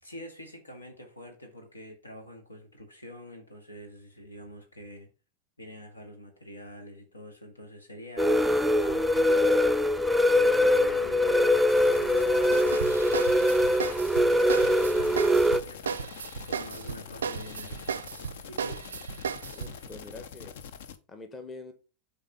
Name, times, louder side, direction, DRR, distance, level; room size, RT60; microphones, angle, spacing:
voice 1, 0.0-5.1 5.6-8.5 8.8-15.2 15.6-16.2 16.5-17.8 18.5-18.8, equal, 80° left, 2.0 m, -46 dB
sound 1, 8.2-15.6, left 1 dB, ahead, 0.4 m, -23 dB
sound 2, 11.7-21.0, left 7 dB, 55° left, 0.7 m, -45 dB
sound 3, 12.5-19.8, right 7 dB, 65° right, 0.4 m, -35 dB
voice 2, 19.5-20.6 21.1-21.7, left 3 dB, 20° left, 1.2 m, -44 dB
7.3 x 4.1 x 5.4 m
figure-of-eight pair, 90°, 0 cm